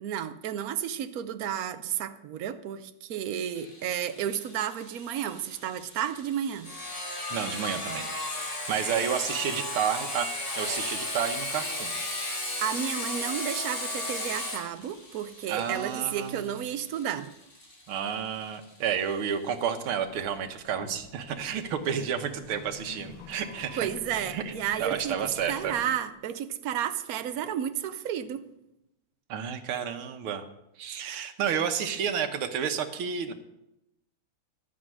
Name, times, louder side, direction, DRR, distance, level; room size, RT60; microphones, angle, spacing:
voice 1, 0.0-6.7 8.3-8.4 12.6-17.3 23.8-25.1 25.5-28.4, right 9 dB, 65° right, 0.9 m, -32 dB
Sawing, 3.6-19.0, left 1 dB, 35° left, 2.7 m, -36 dB
voice 2, 7.3-8.1 8.7-10.3 10.6-12.0 15.5-16.5 17.9-23.9 24.3-24.5 24.8-25.7 29.3-30.4 30.8-33.3, right 8 dB, 90° right, 1.9 m, -31 dB
sound 1, 19.9-25.9, left 3 dB, 75° left, 2.1 m, -48 dB
12.5 x 8.8 x 6.2 m
omnidirectional pair, 2.3 m